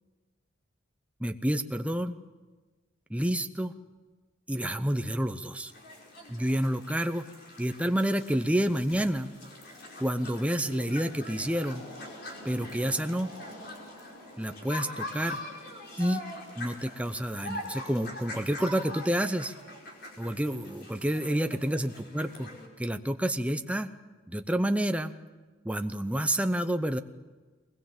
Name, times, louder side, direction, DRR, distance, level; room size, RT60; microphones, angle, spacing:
voice 1, 1.2-2.2 3.1-3.7 4.5-5.7 6.3-7.3 7.6-9.3 10.0-11.8 12.4-13.3 14.4-15.4 16.0-16.2 16.6-19.5 20.2-22.5 22.8-23.9 24.3-25.1 25.6-27.0, right 1 dB, 5° right, 8 dB, 0.8 m, -29 dB
sound 1, 5.7-22.7, left 1 dB, 55° left, 4.7 m, -43 dB
22.0 x 20.0 x 7.4 m, 1.3 s
head